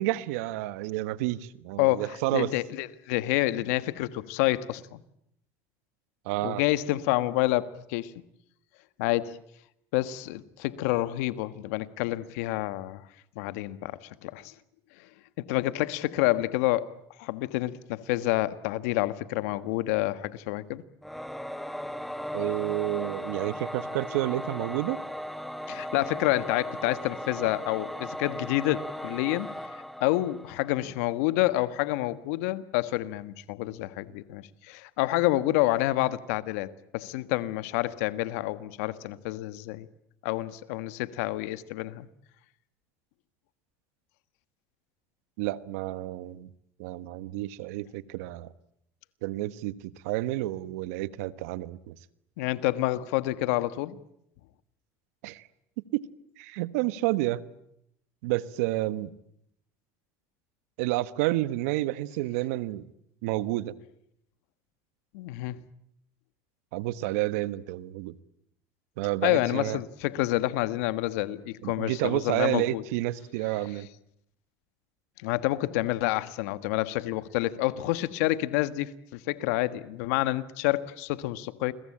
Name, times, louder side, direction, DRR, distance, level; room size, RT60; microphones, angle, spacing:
voice 1, 0.0-2.5 6.2-6.6 22.3-25.0 45.4-46.5 46.8-48.5 49.2-51.9 55.2-55.5 55.9-56.1 56.4-57.4 58.2-59.1 60.8-62.9 63.2-63.7 66.7-68.2 69.0-69.8 71.6-73.9, right 17 dB, 80° right, 16 dB, 1.2 m, -30 dB
voice 2, 1.8-5.0 6.4-8.1 9.0-9.4 9.9-13.0 13.3-14.5 15.4-16.9 17.2-20.8 25.7-29.5 30.0-39.9 40.2-42.1 52.4-54.0 65.1-65.6 69.2-72.8 75.2-81.7, left 17 dB, 80° left, 14 dB, 1.4 m, -28 dB
Singing / Musical instrument, 21.0-31.0, equal, ahead, 1.5 m, -37 dB
29.0 x 22.0 x 8.8 m, 0.76 s
supercardioid pair, 85°, 8 cm